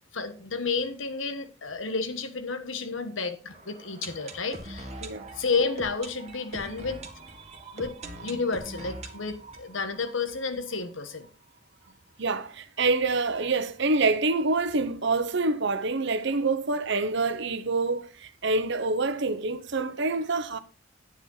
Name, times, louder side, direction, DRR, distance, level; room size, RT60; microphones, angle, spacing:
voice 1, 0.1-4.9 5.3-7.0 7.7-11.3, left 4 dB, 85° left, 1.3 m, -31 dB
sound 1, 3.5-11.3 11.6-11.7 11.9-12.0 12.5-12.6, right 2 dB, 35° right, 1.7 m, -43 dB
voice 2, 12.2-20.6, right 3 dB, 65° right, 1.0 m, -26 dB
10.0 x 8.9 x 4.0 m
head